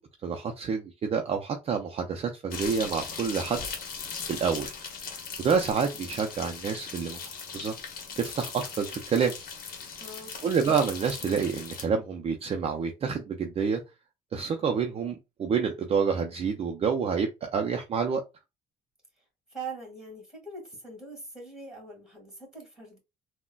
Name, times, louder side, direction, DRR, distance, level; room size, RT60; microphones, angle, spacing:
voice 1, 0.2-3.6 4.3-4.7 5.4-7.7 8.2-9.3 10.4-13.8 14.3-18.2, right 6 dB, 35° right, 0.4 m, -28 dB
sound 1, 2.5-11.9, left 5 dB, 60° left, 0.9 m, -39 dB
voice 2, 10.0-10.3 19.5-23.0, right 3 dB, 5° right, 1.8 m, -42 dB
3.7 x 2.1 x 2.2 m
cardioid pair, 110°, 17 cm